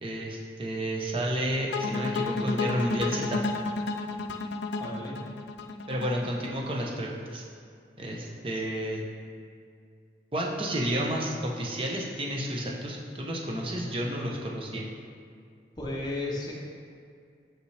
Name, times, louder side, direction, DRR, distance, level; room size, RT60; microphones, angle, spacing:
voice 1, 0.0-3.4 5.9-7.4 8.0-9.0 10.3-14.9, equal, 30° right, -2 dB, 0.7 m, -31 dB
sound 1, 1.7-6.8, left 3 dB, 75° left, 0.4 m, -31 dB
voice 2, 4.8-5.2 15.8-16.6, left 2 dB, 25° left, -3 dB, 0.8 m, -34 dB
5.9 x 5.3 x 3.3 m, 2.3 s
head